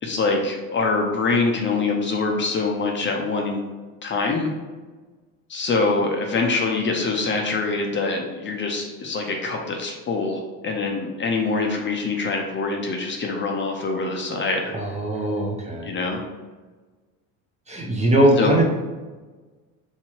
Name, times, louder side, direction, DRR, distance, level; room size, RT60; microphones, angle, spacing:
voice 1, 0.0-3.6 4.0-4.5 5.5-14.7 15.8-16.2 18.4-18.6, left 3 dB, 30° left, 1 dB, 0.6 m, -24 dB
voice 2, 14.7-15.9 17.7-18.7, right 1 dB, 20° right, 0 dB, 0.7 m, -20 dB
3.6 x 3.0 x 4.4 m, 1.3 s
cardioid pair, 115°, 38 cm